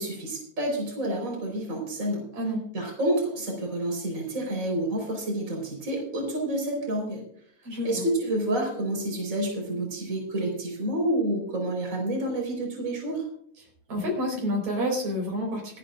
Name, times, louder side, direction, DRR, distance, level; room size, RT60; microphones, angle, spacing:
voice 1, 0.0-2.2 2.7-7.2 7.8-13.3, right 1 dB, 25° right, 0 dB, 4.7 m, -29 dB
voice 2, 7.6-8.1 13.9-15.8, equal, 75° right, 0 dB, 5.9 m, -29 dB
27.0 x 9.9 x 2.5 m, 0.62 s
omnidirectional pair, 3.3 m